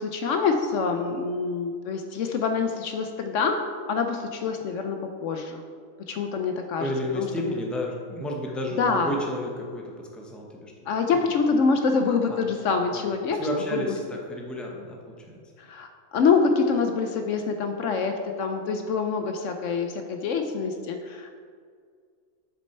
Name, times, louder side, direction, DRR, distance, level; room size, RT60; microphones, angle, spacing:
voice 1, 0.0-5.6 6.1-7.6 8.8-9.2 10.9-13.8 15.6-21.3, left 5 dB, 70° left, 5 dB, 0.9 m, -26 dB
voice 2, 6.8-10.7 12.3-12.4 12.9-13.0 13.4-15.4, left 1 dB, ahead, -1 dB, 0.8 m, -32 dB
7.5 x 6.3 x 4.3 m, 2.1 s
omnidirectional pair, 1.4 m